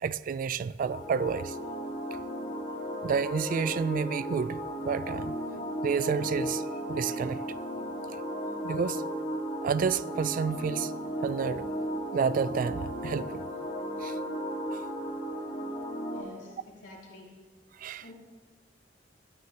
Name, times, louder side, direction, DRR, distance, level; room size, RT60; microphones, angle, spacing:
voice 1, 0.0-1.6 3.0-5.4 5.8-7.4 8.6-9.0 9.6-10.9 11.2-11.7 12.1-13.5 14.0-14.2 14.7-14.8 17.8-18.1, right 6 dB, 50° right, 0.3 m, -30 dB
sound 1, 0.8-16.2, equal, 50° left, 1.9 m, -35 dB
voice 2, 16.1-16.6 16.8-17.3 18.0-18.1, left 2 dB, 85° left, 3.1 m, -48 dB
16.0 x 9.4 x 2.9 m
head